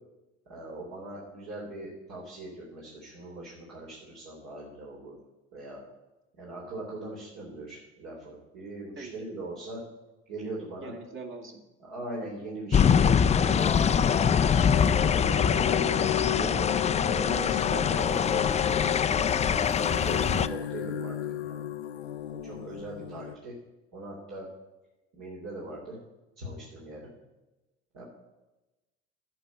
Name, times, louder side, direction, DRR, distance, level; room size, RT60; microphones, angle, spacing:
voice 1, 0.5-5.2 5.5-5.8 6.4-9.8 10.3-11.0 11.8-13.7 14.1-19.3 19.9-21.7 22.4-23.5 23.9-24.5 25.2-26.0 26.4-27.1 27.9-28.0, right 1 dB, 60° right, -5 dB, 3.6 m, -40 dB
voice 2, 10.8-11.6, right 4 dB, 40° right, 3 dB, 2.4 m, -42 dB
sound 1, 12.7-20.5, left 7 dB, 20° left, 0.5 m, -24 dB
sound 2, 13.5-23.4, left 10 dB, 90° left, 0.6 m, -33 dB
11.0 x 5.4 x 8.4 m, 1.0 s
hypercardioid pair, 65°, 32 cm